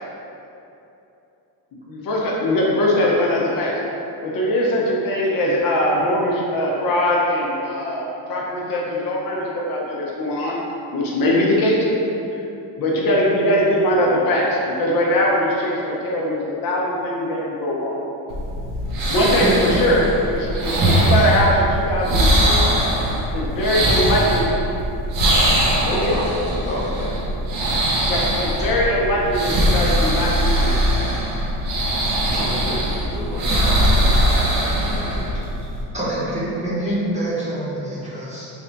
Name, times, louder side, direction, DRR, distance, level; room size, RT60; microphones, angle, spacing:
voice 1, 1.9-3.7 4.2-10.6 10.9-11.9 12.8-17.9 19.1-22.7 23.3-24.4 25.8-26.1 28.1-30.8, left 1 dB, 55° left, -4 dB, 0.7 m, -21 dB
sound 1, 18.3-35.8, right 1 dB, 55° right, 0.7 m, -21 dB
voice 2, 19.4-19.8 35.9-38.5, right 1 dB, 15° right, -9 dB, 0.8 m, -25 dB
voice 3, 23.5-24.0 25.8-27.2 32.2-34.5 34.9-35.3, left 1 dB, 20° left, -6 dB, 0.6 m, -31 dB
3.4 x 2.2 x 3.8 m, 2.9 s
cardioid pair, 135°, 41 cm